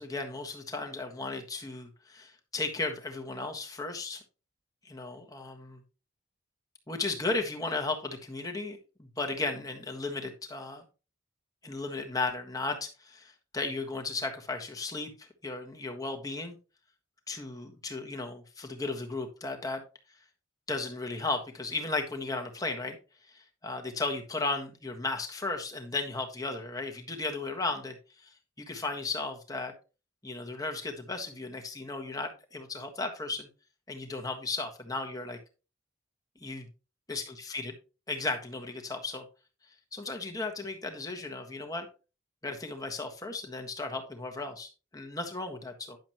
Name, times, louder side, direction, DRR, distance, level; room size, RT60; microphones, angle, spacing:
voice 1, 0.0-4.2 4.8-5.8 6.9-10.8 11.6-16.6 17.3-19.8 20.7-23.0 23.3-29.7 30.2-33.5 33.9-35.4 36.4-36.6 37.1-37.7 38.1-39.2 39.9-41.9 42.4-46.0, left 3 dB, 15° left, 4 dB, 1.4 m, -35 dB
10.5 x 7.1 x 3.0 m, 0.32 s
head